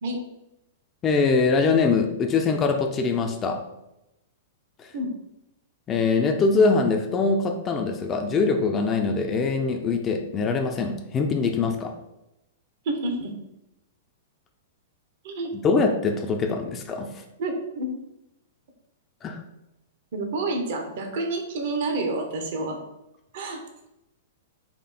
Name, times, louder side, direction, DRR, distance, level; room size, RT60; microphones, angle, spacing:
voice 1, 1.0-3.6 5.9-11.9 15.5-17.1 19.2-19.4, left 4 dB, 25° left, 4 dB, 0.5 m, -23 dB
voice 2, 12.8-13.3 15.2-15.5 17.4-17.9 20.1-22.8 23.3-23.6, right 2 dB, 60° right, 3 dB, 1.0 m, -28 dB
4.3 x 2.7 x 4.2 m, 0.89 s
hypercardioid pair, 105°, 0 cm